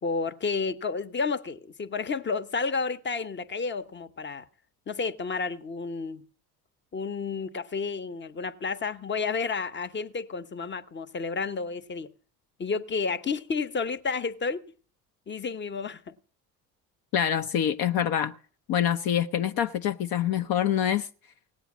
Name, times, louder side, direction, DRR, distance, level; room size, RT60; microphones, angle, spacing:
voice 1, 0.0-4.4 4.9-6.2 6.9-12.1 12.6-14.7 15.3-16.2, left 4 dB, 25° left, 1.0 m, -31 dB
voice 2, 17.1-18.3 18.7-21.1, left 10 dB, 55° left, 0.8 m, -25 dB
17.5 x 8.9 x 6.1 m
hypercardioid pair, 60°, 43 cm